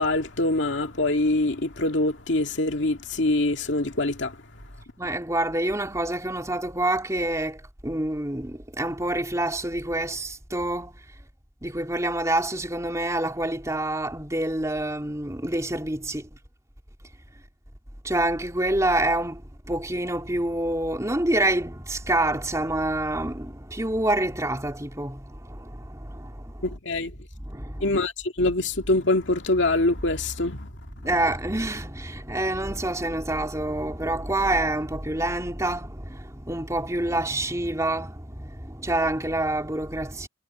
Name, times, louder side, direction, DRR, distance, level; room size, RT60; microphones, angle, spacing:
voice 1, 0.0-4.4 26.6-27.1 27.8-30.7, left 2 dB, 65° left, 2.2 m, -24 dB
voice 2, 5.0-11.0 11.6-16.3 18.0-26.6 27.4-27.9 31.0-40.3, right 1 dB, 15° right, 3.0 m, -27 dB
head